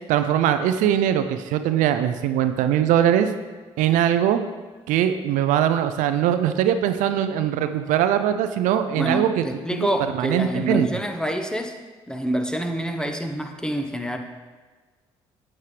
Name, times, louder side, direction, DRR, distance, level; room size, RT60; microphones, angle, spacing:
voice 1, 0.1-3.3 3.8-4.4 4.9-9.4 9.7-9.9 10.2-10.9, right 10 dB, 75° right, 9 dB, 0.5 m, -21 dB
voice 2, 9.0-11.8 12.1-14.2, equal, 5° left, 5 dB, 1.0 m, -27 dB
9.3 x 7.7 x 3.3 m, 1.4 s
hypercardioid pair, 55°, 13 cm